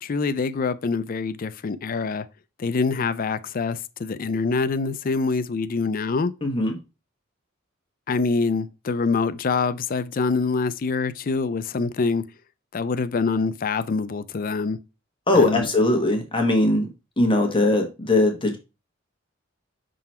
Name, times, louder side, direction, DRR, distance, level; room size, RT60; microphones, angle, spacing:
voice 1, 0.0-2.3 2.6-6.3 8.1-12.2 12.7-14.8 15.3-15.7, left 4 dB, 45° left, 0.4 m, -25 dB
voice 2, 6.4-6.8 15.3-16.9 17.2-18.6, left 2 dB, 25° left, 1.1 m, -20 dB
5.8 x 3.9 x 4.3 m
head